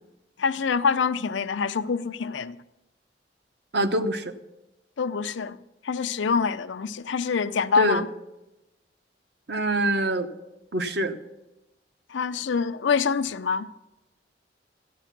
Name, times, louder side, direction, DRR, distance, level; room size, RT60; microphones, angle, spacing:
voice 1, 0.4-2.6 5.0-5.6 5.8-8.1 12.1-13.7, left 5 dB, 90° left, 0.5 m, -25 dB
voice 2, 3.7-4.3 7.8-8.0 9.5-10.3 10.7-11.2, right 1 dB, 65° right, 0.9 m, -24 dB
14.0 x 9.2 x 5.9 m
head